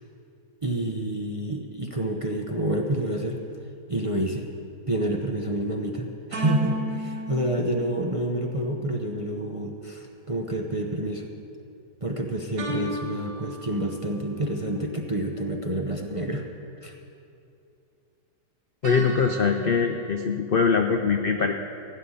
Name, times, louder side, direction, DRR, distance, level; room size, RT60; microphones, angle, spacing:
voice 1, 0.6-3.4 3.9-4.5 4.9-11.3 12.0-16.4 16.8-16.9, right 1 dB, 30° right, 1 dB, 0.6 m, -28 dB
sound 1, 6.3-8.9 12.6-14.4 18.8-20.2, equal, 90° right, 2.0 m, -35 dB
voice 2, 18.8-21.5, left 5 dB, 65° left, 5 dB, 0.5 m, -22 dB
16.0 x 5.6 x 9.8 m, 2.6 s
omnidirectional pair, 1.7 m